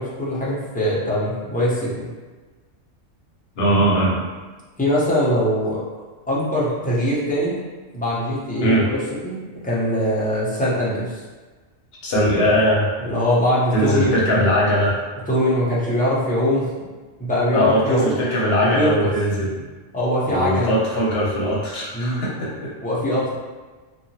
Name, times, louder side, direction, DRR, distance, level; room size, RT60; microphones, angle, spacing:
voice 1, 0.0-2.1 4.8-5.8 6.3-7.6 7.9-9.4 9.6-11.2 13.0-14.4 15.3-16.9 17.2-18.1 18.6-19.1 19.9-20.7 21.9-22.2 22.8-23.3, equal, 10° left, -8 dB, 0.5 m, -22 dB
voice 2, 3.6-4.2 8.6-8.9 12.0-12.9 13.7-15.0 17.5-19.5 20.3-22.7, equal, 60° left, -5 dB, 0.9 m, -20 dB
2.8 x 2.4 x 2.7 m, 1.3 s
omnidirectional pair, 1.3 m